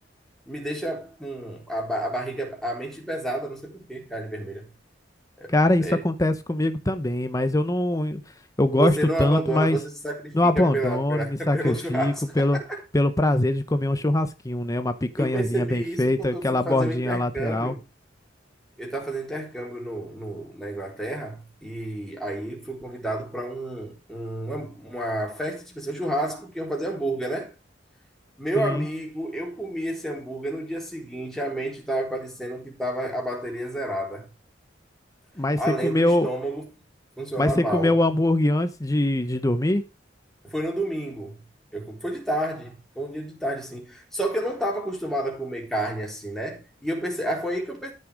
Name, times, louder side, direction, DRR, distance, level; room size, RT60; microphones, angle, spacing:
voice 1, 0.5-4.6 5.4-5.5 5.8-6.0 8.8-12.8 15.2-17.8 18.8-27.5 28.4-34.3 35.6-36.6 37.2-37.9 40.4-41.4 41.7-47.9, right 1 dB, 5° left, 4.0 m, -30 dB
voice 2, 5.5-8.2 8.6-9.8 10.3-12.6 12.9-17.7 28.6-28.9 35.4-36.3 37.4-39.8, left 1 dB, 20° left, 0.8 m, -23 dB
14.0 x 6.1 x 5.0 m
head